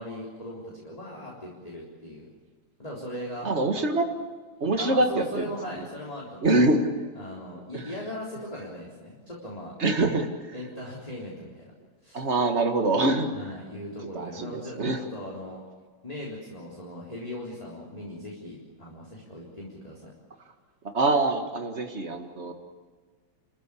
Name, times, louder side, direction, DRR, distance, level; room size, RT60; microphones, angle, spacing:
voice 1, 0.0-2.3 2.8-3.5 4.8-6.7 7.2-9.7 10.5-11.7 12.0-12.2 13.3-15.6 16.0-20.1, left 1 dB, 10° left, -4 dB, 3.7 m, -39 dB
voice 2, 3.4-4.1 4.6-5.8 6.4-6.9 7.7-7.9 9.8-10.3 12.1-13.3 14.1-15.0 20.8-22.5, right 2 dB, 30° right, 5 dB, 1.6 m, -25 dB
29.0 x 15.0 x 8.5 m, 1.5 s
omnidirectional pair, 3.5 m